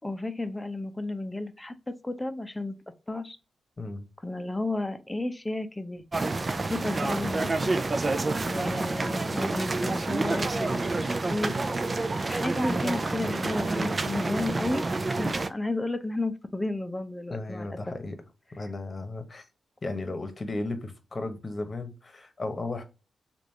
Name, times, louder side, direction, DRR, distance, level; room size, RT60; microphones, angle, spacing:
voice 1, 0.0-2.7 3.1-3.4 4.2-6.0 6.7-7.7 8.5-11.6 12.3-17.9, left 2 dB, 15° left, 0.7 m, -32 dB
sound 1, 6.1-15.5, right 3 dB, 40° right, 0.5 m, -28 dB
voice 2, 17.3-18.2 18.6-19.5 19.8-22.8, left 2 dB, 40° left, 1.0 m, -35 dB
3.4 x 2.5 x 4.0 m
supercardioid pair, 50°, 0 cm